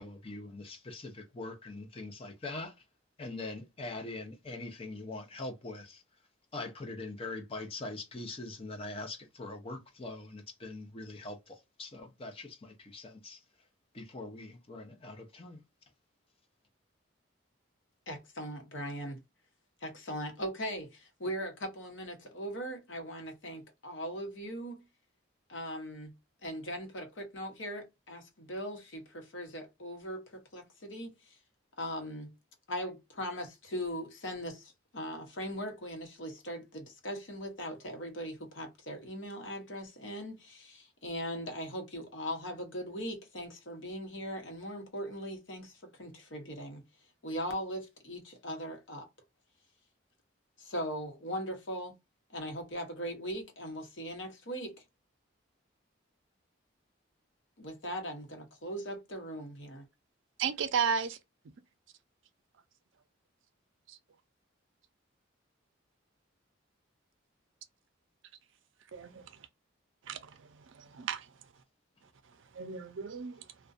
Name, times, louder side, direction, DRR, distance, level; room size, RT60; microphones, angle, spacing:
voice 1, 0.0-2.7 3.2-6.0 6.5-13.4 13.9-15.6, left 2 dB, 25° left, 0.5 m, -42 dB
voice 2, 18.1-19.2 19.8-24.8 25.5-26.1 26.4-31.1 31.8-32.3 32.7-46.8 47.2-49.1 50.6-51.9 52.3-54.8 57.6-59.9, equal, 65° left, 0.9 m, -39 dB
voice 3, 60.4-61.2 63.9-64.0 68.9-69.2 70.1-70.3 70.7-71.3 72.5-73.5, right 6 dB, 70° right, 0.4 m, -33 dB
2.4 x 2.1 x 2.5 m
head